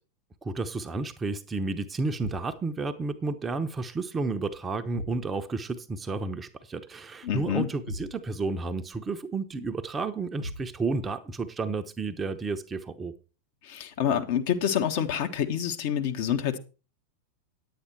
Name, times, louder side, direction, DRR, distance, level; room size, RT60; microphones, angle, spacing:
voice 1, 0.4-13.1, right 3 dB, 15° right, 0.8 m, -31 dB
sound 1, 2.2-2.6 4.9-5.3 7.9-8.2 10.4-10.8, left 1 dB, 80° left, 1.7 m, -38 dB
voice 2, 7.2-7.7 13.6-16.6, left 9 dB, 50° left, 1.3 m, -27 dB
10.0 x 8.6 x 4.5 m
figure-of-eight pair, 90°, 0 cm